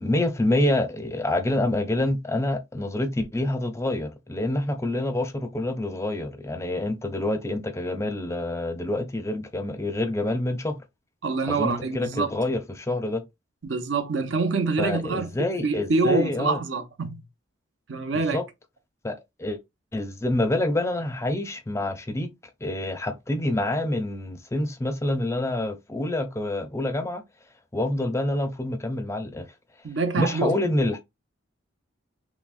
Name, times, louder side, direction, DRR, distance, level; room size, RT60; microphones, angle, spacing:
voice 1, 0.0-10.8 11.5-13.2 14.8-16.6 18.3-18.4 19.0-19.6 19.9-22.3 22.6-27.2 27.7-29.5 30.2-31.0, left 1 dB, 15° left, 0.5 m, -27 dB
voice 2, 11.2-12.3 13.6-15.3 15.6-17.2 17.9-18.4 29.8-30.6, right 4 dB, 70° right, 0.6 m, -25 dB
5.8 x 2.1 x 2.4 m
head